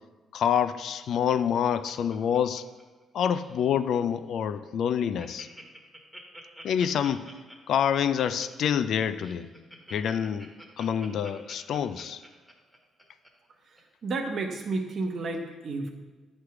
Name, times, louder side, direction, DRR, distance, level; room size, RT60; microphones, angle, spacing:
voice 1, 0.3-2.6 3.1-5.5 6.6-7.3 7.7-9.5 9.9-10.5 10.8-12.2, left 8 dB, 70° left, 13 dB, 0.3 m, -27 dB
Laughter, 1.3-3.0 3.3-3.7 4.1-4.2 4.5-4.6 4.9-13.3 13.8-13.9, right 1 dB, 5° right, 1.3 m, -48 dB
voice 2, 13.7-15.9, right 3 dB, 55° right, 4 dB, 1.0 m, -32 dB
8.0 x 3.3 x 5.8 m, 1.3 s
cardioid pair, 90°, 0 cm